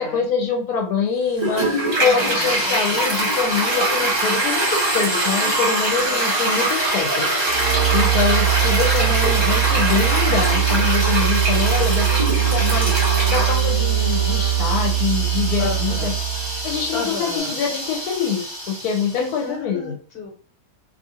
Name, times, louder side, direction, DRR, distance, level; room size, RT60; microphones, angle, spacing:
voice 1, 0.0-13.0 13.3-16.1 16.6-18.4 18.7-19.9, left 6 dB, 80° left, 1 dB, 1.1 m, -25 dB
sound 1, 1.1-12.2, right 1 dB, 15° left, 1.2 m, -38 dB
Toilet flush, 1.4-19.3, right 1 dB, 25° right, 0.7 m, -23 dB
voice 2, 2.0-3.0 6.0-6.2 8.6-8.7 9.0-9.4 15.6-16.1 16.9-17.6 19.1-20.3, left 4 dB, 45° left, -2 dB, 1.2 m, -32 dB
sound 2, 7.5-17.0, right 12 dB, 75° right, 1.0 m, -21 dB
2.6 x 2.4 x 2.8 m, 0.41 s
omnidirectional pair, 1.6 m